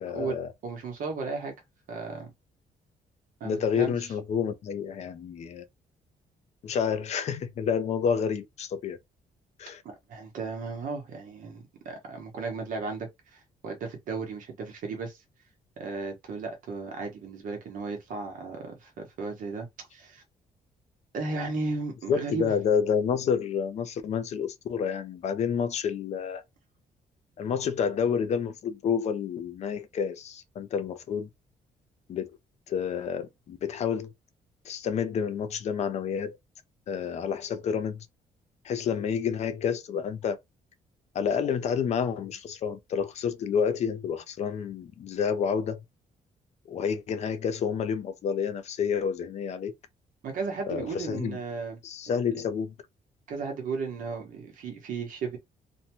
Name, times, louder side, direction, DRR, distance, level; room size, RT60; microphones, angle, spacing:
voice 1, 0.0-0.5 3.4-5.6 6.6-9.0 9.6-9.8 22.1-26.4 27.4-31.3 32.1-32.3 32.7-34.1 34.7-36.4 36.9-38.1 38.6-40.4 41.1-45.8 46.7-49.7 50.7-51.4 51.8-52.7, left 7 dB, 50° left, 0.4 m, -29 dB
voice 2, 0.6-1.5 1.9-2.3 3.4-4.1 9.8-15.2 15.8-20.2 21.1-22.5 50.2-51.8 52.1-52.2 53.3-55.4, right 4 dB, 65° right, 0.8 m, -35 dB
2.6 x 2.1 x 2.9 m
cardioid pair, 155°, 15 cm